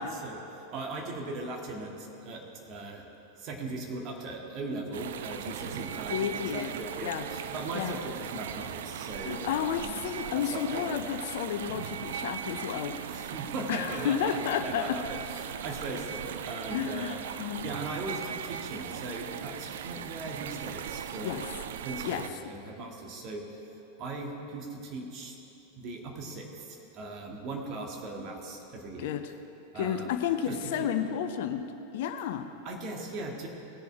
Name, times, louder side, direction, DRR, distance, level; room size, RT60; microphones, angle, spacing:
voice 1, 0.2-3.1 3.4-10.0 10.3-11.0 13.1-17.2 17.6-21.4 21.8-23.4 24.0-25.4 25.7-29.1 29.7-30.2 30.5-30.9 32.6-33.5, right 2 dB, 35° right, 1 dB, 1.8 m, -39 dB
sound 1, 4.9-22.3, right 9 dB, 60° right, 0.4 m, -38 dB
voice 2, 6.1-6.8 7.0-7.2 7.7-8.0 9.2-13.3 13.7-15.0 16.7-17.7 21.2-21.5 22.0-22.2 29.0-29.3 29.7-31.7 31.9-32.5, left 9 dB, 55° left, 9 dB, 0.6 m, -32 dB
18.0 x 6.9 x 4.7 m, 2.9 s
figure-of-eight pair, 90°, 0 cm